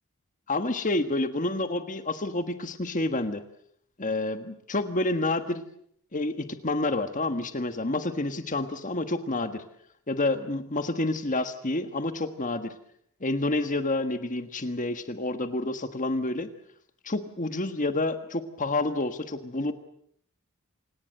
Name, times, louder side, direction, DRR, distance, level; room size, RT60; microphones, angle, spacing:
voice 1, 0.5-3.4 4.0-5.6 6.1-9.6 10.1-12.7 13.2-16.5 17.0-19.7, left 2 dB, 35° left, 9 dB, 1.5 m, -29 dB
27.5 x 18.5 x 7.8 m, 0.69 s
head